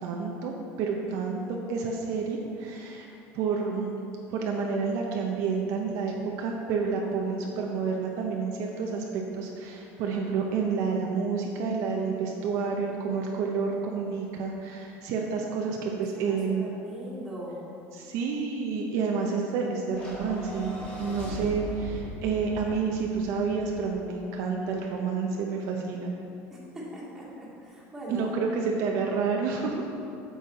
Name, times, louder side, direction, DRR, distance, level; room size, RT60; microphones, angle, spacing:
voice 1, 0.0-3.1 3.3-4.0 4.3-16.6 17.9-20.7 21.0-26.1 28.1-29.9, right 5 dB, 60° right, 0 dB, 0.8 m, -29 dB
voice 2, 16.1-17.7 26.5-28.3, right 1 dB, 5° right, -8 dB, 2.1 m, -41 dB
sound 1, 19.9-24.3, equal, 20° left, 2.2 m, -39 dB
8.5 x 7.2 x 4.2 m, 2.6 s
cardioid pair, 160°, 6 cm